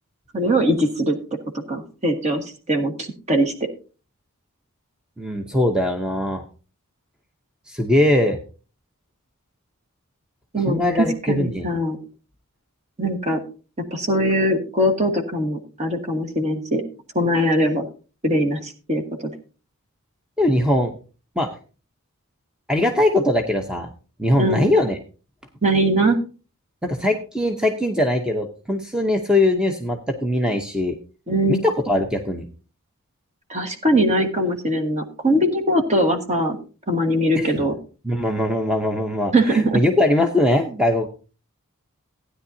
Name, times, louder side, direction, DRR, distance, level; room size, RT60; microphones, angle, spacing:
voice 1, 0.3-1.2 1.5-3.5 10.5-10.8 11.3-12.0 13.0-13.4 13.9-16.8 17.1-17.9 18.2-19.0 24.4-24.7 25.6-26.2 31.3-31.6 33.5-36.6 36.9-37.7 39.3-39.8, right 1 dB, 30° right, 4 dB, 1.5 m, -21 dB
voice 2, 5.2-6.4 7.7-8.4 10.7-11.7 20.4-21.0 21.4-21.6 22.7-23.9 24.2-25.0 26.8-30.9 31.5-32.4 37.4-37.5 38.0-41.1, left 1 dB, 5° right, 3 dB, 0.7 m, -21 dB
15.5 x 9.8 x 2.7 m, 0.35 s
head